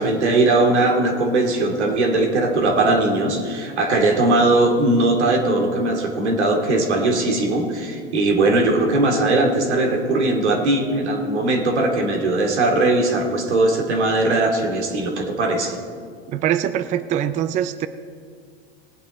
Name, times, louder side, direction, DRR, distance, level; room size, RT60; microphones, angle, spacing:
voice 1, 0.0-15.8, right 2 dB, 85° right, 1 dB, 2.5 m, -19 dB
voice 2, 16.3-17.9, right 10 dB, 25° right, 13 dB, 0.4 m, -23 dB
19.5 x 8.3 x 4.1 m, 2.1 s
hypercardioid pair, 105°, 33 cm